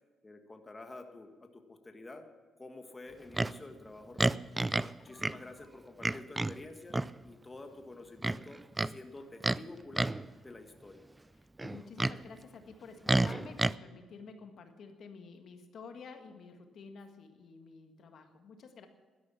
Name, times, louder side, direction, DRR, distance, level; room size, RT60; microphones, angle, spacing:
voice 1, 0.2-2.3 2.6-4.4 4.9-7.0 7.2-8.6 8.9-10.2 10.4-11.1, left 2 dB, 20° left, 5 dB, 1.5 m, -49 dB
Livestock farm animals working animals, 3.3-3.6 4.2-4.9 5.2-5.4 6.0-6.6 6.9-7.1 8.2-8.9 9.4-9.6 9.9-10.3 11.6-12.2 13.1-13.7, right 2 dB, 15° right, 0.4 m, -30 dB
voice 2, 5.1-5.4 11.4-18.9, left 5 dB, 60° left, 6 dB, 1.6 m, -50 dB
12.0 x 11.0 x 7.4 m, 1.4 s
cardioid pair, 90°, 0 cm